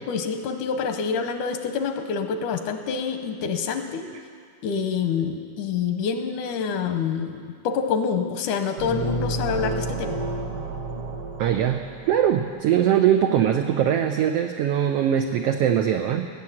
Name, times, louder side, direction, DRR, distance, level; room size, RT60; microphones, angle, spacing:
voice 1, 0.1-4.1 4.6-10.1, left 6 dB, 85° left, 7 dB, 2.4 m, -27 dB
sound 1, 8.8-12.5, right 2 dB, 55° right, 2.0 m, -30 dB
voice 2, 11.4-16.3, right 9 dB, 90° right, 5 dB, 1.3 m, -21 dB
17.0 x 7.3 x 8.7 m, 2.2 s
omnidirectional pair, 3.5 m